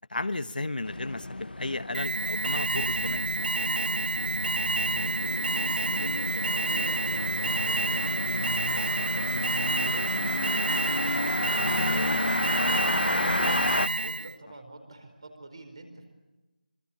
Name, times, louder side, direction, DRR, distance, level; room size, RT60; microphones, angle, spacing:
voice 1, 0.1-3.7, left 2 dB, 65° left, 11 dB, 1.3 m, -34 dB
sound 1, 0.8-13.9, left 2 dB, 90° left, 1.0 m, -32 dB
Alarm, 1.9-14.3, right 2 dB, 80° right, 0.9 m, -29 dB
voice 2, 4.8-9.4 9.7-10.8 11.0-13.6 14.0-16.1, right 2 dB, 35° right, 7 dB, 4.5 m, -46 dB
26.5 x 25.0 x 8.7 m, 1.1 s
figure-of-eight pair, 180°, 5 cm